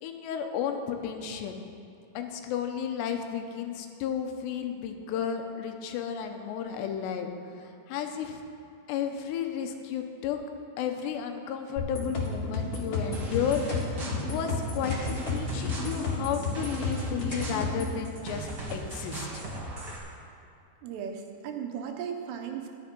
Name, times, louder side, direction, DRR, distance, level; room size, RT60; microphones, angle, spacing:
voice 1, 0.0-1.6 2.1-7.3 7.6-8.4 8.9-10.4 10.8-13.6 13.9-19.4, left 8 dB, 85° left, 5 dB, 3.0 m, -33 dB
sound 1, 11.8-17.9, left 3 dB, 40° left, 2.3 m, -32 dB
sound 2, 13.1-20.0, right 1 dB, 50° right, 1.3 m, -39 dB
sound 3, 13.2-14.5 14.7-15.4 16.1-17.8, equal, 20° left, 1.9 m, -46 dB
voice 2, 20.8-22.7, right 7 dB, 80° right, 4 dB, 3.1 m, -36 dB
13.0 x 10.5 x 5.3 m, 2.5 s
omnidirectional pair, 4.9 m